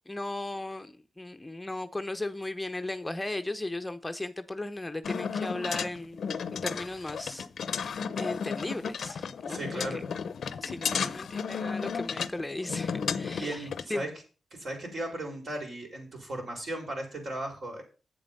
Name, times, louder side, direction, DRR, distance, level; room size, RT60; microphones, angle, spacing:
voice 1, 0.1-6.2 6.6-9.7 9.9-10.0 10.6-14.0, left 2 dB, 15° left, 0.6 m, -36 dB
sound 1, 5.0-13.8, left 6 dB, 70° left, 0.5 m, -33 dB
voice 2, 9.5-10.1 10.9-11.1 13.4-14.1 14.5-17.8, right 1 dB, 55° right, 4.4 m, -36 dB
8.1 x 7.6 x 5.4 m
cardioid pair, 80°, 0 cm